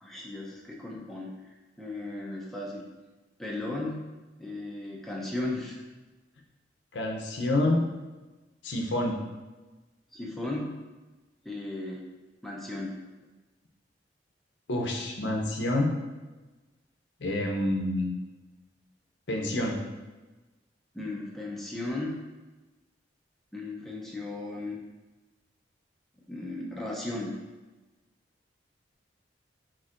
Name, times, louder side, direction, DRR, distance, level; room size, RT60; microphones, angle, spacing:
voice 1, 0.0-1.5 1.8-2.9 3.4-4.1 4.4-5.8 10.1-10.7 11.4-12.0 12.4-13.0 20.9-22.2 23.5-24.8 26.3-27.3, left 2 dB, ahead, -4 dB, 0.5 m, -36 dB
voice 2, 6.9-7.9 8.6-9.2 14.7-15.9 17.2-18.1 19.3-19.8, left 1 dB, 70° left, 0 dB, 0.6 m, -27 dB
4.3 x 4.3 x 2.5 m, 1.2 s
head